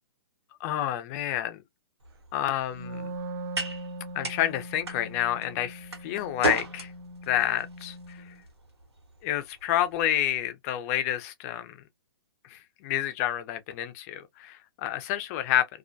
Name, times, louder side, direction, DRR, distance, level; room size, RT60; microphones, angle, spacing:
voice 1, 0.6-1.6 2.3-3.1 4.1-6.9 7.3-8.2 9.2-11.8 12.4-15.7, left 12 dB, 35° left, 0.5 m, -29 dB
sound 1, 2.0-10.4, right 3 dB, 85° right, 1.2 m, -38 dB
Wind instrument woodwind instrument, 2.7-8.4, right 1 dB, 55° right, 0.6 m, -41 dB
2.4 x 2.1 x 2.5 m
hypercardioid pair, 120°, 13 cm